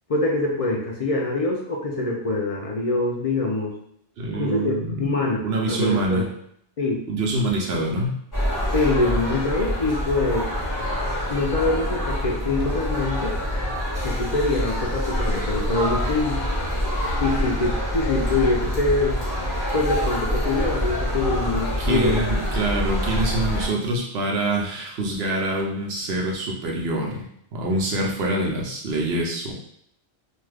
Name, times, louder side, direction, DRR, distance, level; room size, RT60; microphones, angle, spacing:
voice 1, 0.1-3.7 4.4-4.7 5.0-6.2 6.8-7.0 8.7-10.5 11.3-13.3 14.0-16.4 17.2-19.2 19.7-22.2, left 3 dB, 50° left, -1 dB, 0.4 m, -24 dB
voice 2, 4.2-5.1 5.4-6.3 7.1-8.2 21.8-27.3 27.5-29.5, right 2 dB, 70° right, -1 dB, 0.9 m, -25 dB
sound 1, 8.3-23.7, equal, 20° left, 1.2 m, -26 dB
2.5 x 2.3 x 3.3 m, 0.69 s
omnidirectional pair, 1.1 m